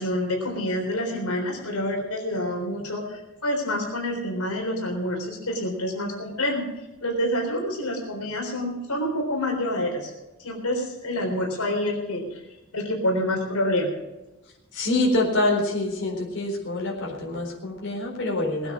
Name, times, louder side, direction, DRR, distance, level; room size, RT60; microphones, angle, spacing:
voice 1, 0.0-6.6 7.0-10.1 10.4-12.4 12.7-13.9, left 1 dB, 80° left, 0 dB, 3.8 m, -27 dB
voice 2, 14.7-18.7, left 2 dB, 55° left, -2 dB, 4.2 m, -25 dB
19.5 x 9.1 x 6.2 m, 1.0 s
head